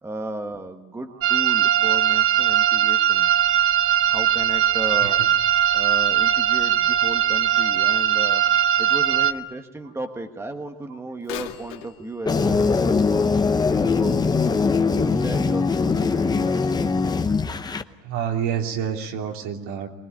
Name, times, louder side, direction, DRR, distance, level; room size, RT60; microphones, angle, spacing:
voice 1, 0.0-3.3 4.1-5.2 5.7-8.4 8.8-16.7, right 2 dB, 10° right, 6 dB, 1.3 m, -35 dB
sound 1, 1.2-9.3, right 10 dB, 45° right, 0.9 m, -20 dB
voice 2, 5.0-5.3 8.8-8.9 14.9-15.0 18.0-19.9, right 8 dB, 70° right, 2 dB, 3.3 m, -28 dB
Bird vocalization bird call bird song / Telephone, 11.2-15.0 15.6-15.7 16.5-16.6 17.2-17.3, left 14 dB, 85° left, 2.3 m, -42 dB
sound 2, 12.3-17.8, left 4 dB, 15° left, 0.8 m, -21 dB
23.5 x 19.5 x 9.7 m, 1.2 s
cardioid pair, 150°, 30 cm